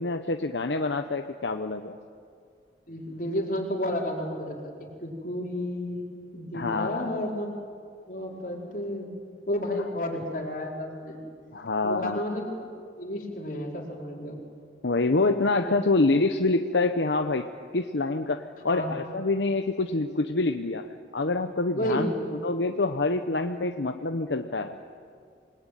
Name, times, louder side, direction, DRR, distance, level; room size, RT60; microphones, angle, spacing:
voice 1, 0.0-2.0 6.5-7.1 11.5-12.2 14.8-17.5 17.7-22.1 22.4-24.8, left 3 dB, 80° left, 6 dB, 0.9 m, -26 dB
voice 2, 2.9-4.7 5.0-6.0 6.3-7.5 8.1-9.1 9.5-11.2 11.8-12.6 13.0-14.4 15.6-15.7 18.7-18.9 21.7-22.1, left 1 dB, 50° left, -1 dB, 4.5 m, -31 dB
27.5 x 20.0 x 9.2 m, 2.3 s
head